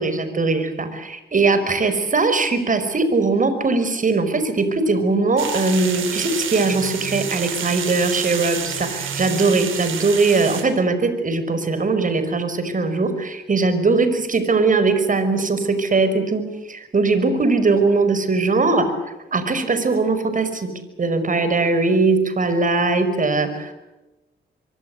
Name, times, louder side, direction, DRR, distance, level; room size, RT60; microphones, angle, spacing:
voice 1, 0.0-18.9 19.3-20.7 21.0-23.7, right 3 dB, 40° right, 10 dB, 5.4 m, -20 dB
sound 1, 5.4-10.6, right 7 dB, 85° right, 5.0 m, -29 dB
25.0 x 24.5 x 8.0 m, 1.0 s
cardioid pair, 85°, 20 cm